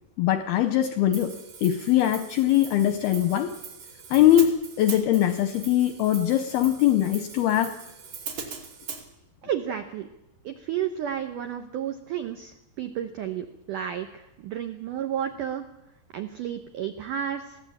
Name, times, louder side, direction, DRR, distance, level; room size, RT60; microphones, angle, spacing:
voice 1, 0.2-1.3 1.6-3.5 4.1-7.7, left 12 dB, 80° left, 10 dB, 2.3 m, -22 dB
Hi-hat, 1.1-9.0, right 6 dB, 50° right, 3.8 m, -40 dB
voice 2, 9.4-10.1 10.4-15.6 16.1-17.6, right 9 dB, 80° right, 7 dB, 1.8 m, -32 dB
21.0 x 16.0 x 8.7 m, 0.88 s
omnidirectional pair, 5.4 m